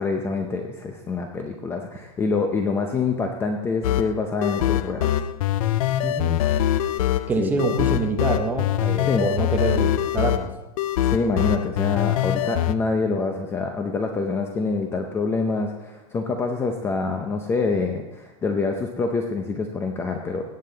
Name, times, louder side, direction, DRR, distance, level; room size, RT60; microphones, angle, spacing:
voice 1, 0.0-5.1 7.4-7.5 9.1-9.3 11.0-20.4, left 4 dB, 15° left, 4 dB, 0.6 m, -26 dB
sound 1, 3.8-12.7, left 12 dB, 75° left, 0.5 m, -23 dB
voice 2, 6.0-6.4 7.3-10.5, right 3 dB, 10° right, 4 dB, 0.9 m, -26 dB
17.0 x 7.5 x 3.9 m, 1.0 s
supercardioid pair, 175°, 18 cm